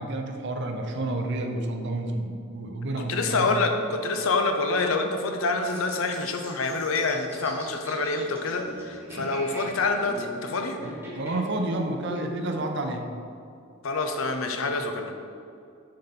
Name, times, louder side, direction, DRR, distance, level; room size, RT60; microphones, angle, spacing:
voice 1, 0.0-3.5 9.1-9.3 10.8-13.1, right 2 dB, 60° right, 4 dB, 0.6 m, -30 dB
voice 2, 3.1-10.8 13.8-15.1, left 3 dB, 70° left, 5 dB, 0.6 m, -27 dB
sound 1, 5.7-12.6, left 1 dB, 10° right, 1.0 m, -42 dB
6.5 x 4.1 x 4.3 m, 2.4 s
head